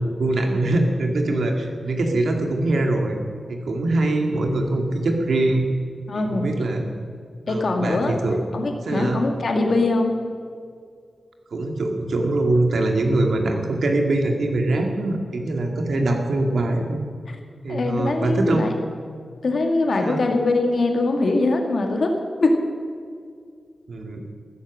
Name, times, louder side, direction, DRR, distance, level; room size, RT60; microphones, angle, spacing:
voice 1, 0.0-3.2 3.5-5.6 6.1-6.8 7.5-8.4 8.8-9.2 11.5-17.0 17.6-18.7 20.0-20.2 23.9-24.2, right 2 dB, 80° right, 3 dB, 2.3 m, -23 dB
voice 2, 6.1-6.5 7.5-8.2 8.5-10.1 17.7-18.7 19.4-22.1 22.4-22.6, left 2 dB, 55° left, 3 dB, 1.9 m, -22 dB
15.0 x 14.0 x 6.2 m, 2.2 s
wide cardioid pair, 170°, 0 cm